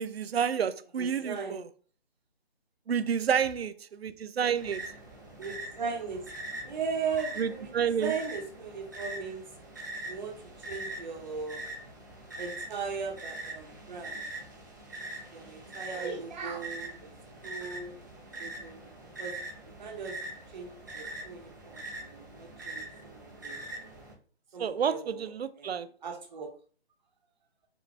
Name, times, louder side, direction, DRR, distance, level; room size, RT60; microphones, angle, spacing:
voice 1, 0.0-1.6 2.9-4.8 7.4-8.1 24.6-25.9, right 7 dB, 70° right, 14 dB, 0.5 m, -29 dB
voice 2, 1.0-1.6 5.4-6.3 6.6-9.4 10.1-10.4 10.7-11.6 12.4-14.2 15.3-17.1 17.4-17.9 18.4-19.4 19.8-20.1 20.5-23.6 24.5-25.3 25.6-26.5, right 5 dB, 45° right, 2 dB, 1.0 m, -38 dB
sound 1, 4.6-24.1, right 2 dB, 20° right, 0.6 m, -43 dB
5.1 x 2.4 x 3.2 m, 0.41 s
figure-of-eight pair, 150°, 32 cm